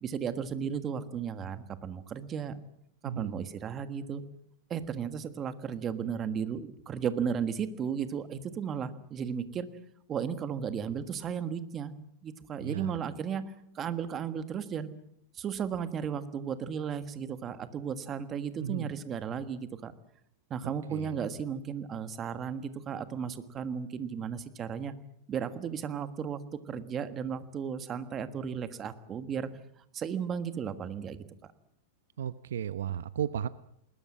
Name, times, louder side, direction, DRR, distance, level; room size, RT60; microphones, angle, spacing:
voice 1, 0.0-2.6 3.0-4.2 4.7-9.7 10.1-11.9 12.2-14.9 15.3-19.9 20.5-24.9 25.3-26.4 26.7-29.5 29.9-31.2, right 7 dB, 20° right, 12 dB, 1.5 m, -35 dB
voice 2, 3.0-3.4 12.6-13.0 18.6-18.9 20.6-21.2 32.2-33.5, right 9 dB, 90° right, 14 dB, 0.9 m, -35 dB
20.5 x 20.5 x 8.6 m, 0.71 s
supercardioid pair, 165°, 0 cm